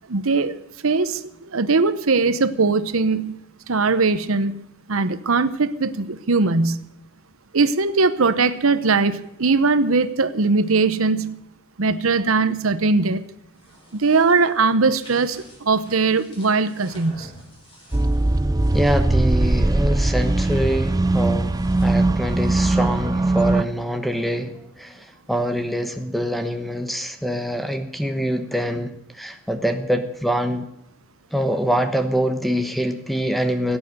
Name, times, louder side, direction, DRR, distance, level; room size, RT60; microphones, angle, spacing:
voice 1, 0.1-3.4 3.7-4.5 4.9-6.8 7.5-11.4 11.8-13.2 13.9-17.3, right 4 dB, 80° right, 13 dB, 0.9 m, -20 dB
sound 1, 13.4-19.1 20.6-22.8, equal, 25° left, 5.9 m, -47 dB
sound 2, 17.9-23.6, right 2 dB, 15° right, 0.4 m, -20 dB
voice 2, 18.7-30.7 31.3-33.8, equal, ahead, 8 dB, 1.1 m, -25 dB
17.0 x 9.2 x 8.0 m, 0.81 s
head